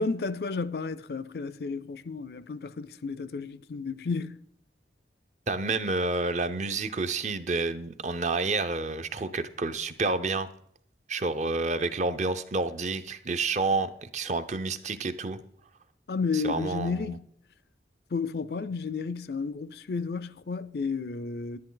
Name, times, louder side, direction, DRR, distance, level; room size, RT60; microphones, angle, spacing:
voice 1, 0.0-4.4 16.1-17.2 18.1-21.6, left 4 dB, 60° left, 0.4 m, -32 dB
voice 2, 5.5-10.5 11.1-15.4 16.3-17.1, right 3 dB, 40° right, 0.6 m, -29 dB
10.5 x 10.5 x 3.9 m
head